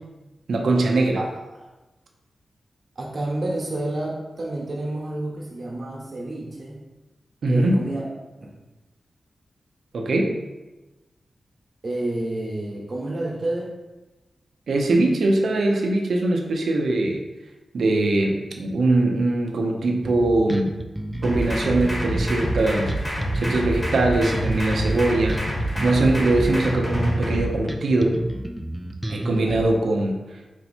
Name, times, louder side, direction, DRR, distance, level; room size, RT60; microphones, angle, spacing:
voice 1, 0.5-1.2 7.4-7.8 9.9-10.3 14.7-17.2 17.7-20.8 21.2-23.0 23.3-25.4 25.8-28.2 29.1-30.2, right 2 dB, 75° right, 1 dB, 0.6 m, -21 dB
voice 2, 3.0-6.8 7.5-8.1 8.4-8.5 11.8-13.7 29.1-29.7, right 1 dB, 40° right, -3 dB, 1.2 m, -29 dB
Bass guitar, 20.0-29.6, right 1 dB, 10° right, 0.3 m, -31 dB
sound 1, 21.2-27.4, right 1 dB, 20° left, 1.1 m, -27 dB
4.4 x 2.8 x 4.3 m, 1.1 s
wide cardioid pair, 145°, 0 cm